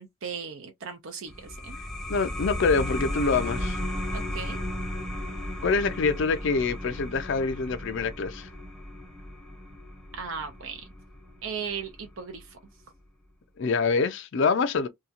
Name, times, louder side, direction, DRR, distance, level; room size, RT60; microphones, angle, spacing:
voice 1, 0.0-1.8 4.1-4.6 10.1-10.9 11.4-12.6, right 6 dB, 65° right, 0.5 m, -37 dB
sound 1, 1.3-12.4, left 1 dB, ahead, 0.7 m, -35 dB
voice 2, 2.1-3.8 5.6-8.5 13.6-14.9, left 4 dB, 55° left, 0.4 m, -25 dB
2.8 x 2.2 x 2.4 m
head